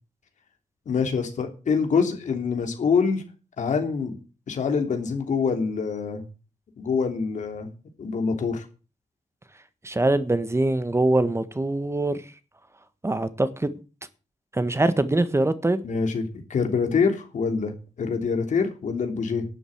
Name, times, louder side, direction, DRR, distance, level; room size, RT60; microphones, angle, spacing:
voice 1, 0.9-3.2 3.6-4.2 4.5-6.2 6.8-7.7 8.0-8.6 15.8-19.4, left 5 dB, 80° left, 3.2 m, -25 dB
voice 2, 9.8-12.2 13.0-13.7 14.5-15.8, right 2 dB, 20° right, 1.5 m, -23 dB
11.5 x 8.0 x 7.9 m
cardioid pair, 80°, 13 cm